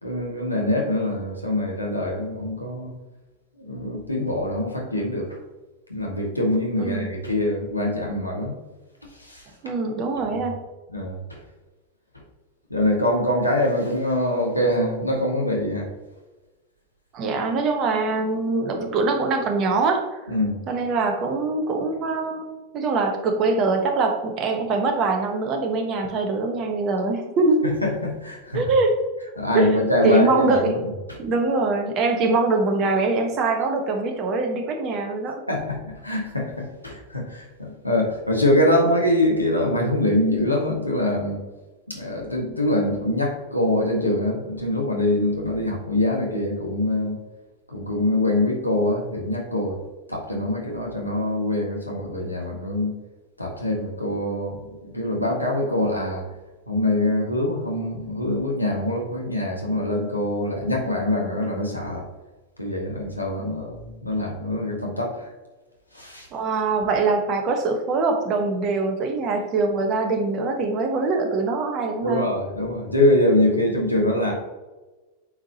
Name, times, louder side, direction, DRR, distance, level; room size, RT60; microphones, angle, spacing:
voice 1, 0.0-2.9 3.6-5.4 5.9-8.5 9.2-9.5 10.3-10.4 10.9-11.4 12.7-15.9 20.3-20.6 27.8-28.7 29.4-30.8 35.5-41.4 41.9-47.2 47.7-49.8 50.1-53.0 53.4-56.2 56.7-62.0 62.6-65.3 65.9-66.3 72.0-74.3, left 1 dB, 90° left, -1 dB, 1.7 m, -24 dB
voice 2, 9.6-10.6 17.1-20.0 20.7-22.5 22.7-27.6 28.5-28.9 29.5-29.7 30.0-30.8 31.2-35.4 66.3-72.2, right 3 dB, 35° right, 4 dB, 1.2 m, -23 dB
8.8 x 4.8 x 2.9 m, 1.2 s
figure-of-eight pair, 90°, 0 cm